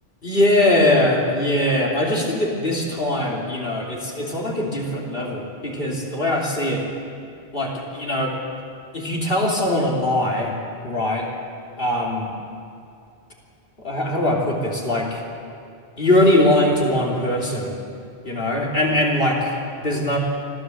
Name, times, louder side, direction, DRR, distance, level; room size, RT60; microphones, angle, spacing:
voice 1, 0.2-6.9 7.5-8.4 8.9-10.6 10.8-11.3 11.8-12.3 13.8-15.2 16.0-17.7 18.2-20.2, left 1 dB, 55° left, -2 dB, 3.3 m, -21 dB
24.5 x 14.5 x 7.8 m, 2.5 s
omnidirectional pair, 1.1 m